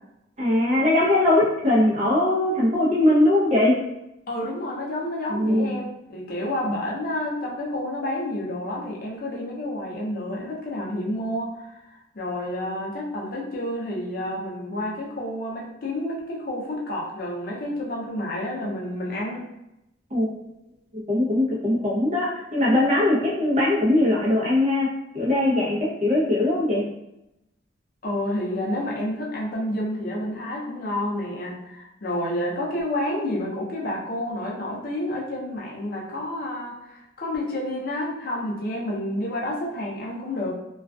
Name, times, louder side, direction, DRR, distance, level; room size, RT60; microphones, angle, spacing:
voice 1, 0.4-3.7 5.3-5.7 20.1-20.3 21.1-24.9 25.1-26.8, left 1 dB, 35° right, -5 dB, 0.7 m, -20 dB
voice 2, 4.3-19.4 28.0-40.5, left 1 dB, 50° left, -2 dB, 0.5 m, -29 dB
2.4 x 2.3 x 2.3 m, 0.86 s
head